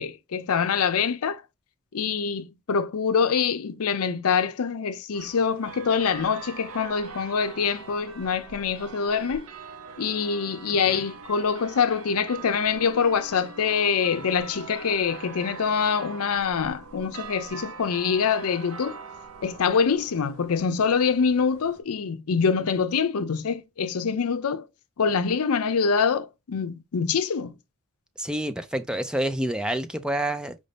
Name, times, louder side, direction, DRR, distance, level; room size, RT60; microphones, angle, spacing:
voice 1, 0.0-1.4 1.9-9.5 10.0-19.0 19.4-24.7 25.0-27.6, left 6 dB, 75° left, 0.5 m, -25 dB
sound 1, 5.1-21.8, right 5 dB, 65° right, 0.6 m, -42 dB
voice 2, 28.2-30.5, right 1 dB, 5° right, 0.4 m, -28 dB
5.1 x 2.6 x 3.3 m
head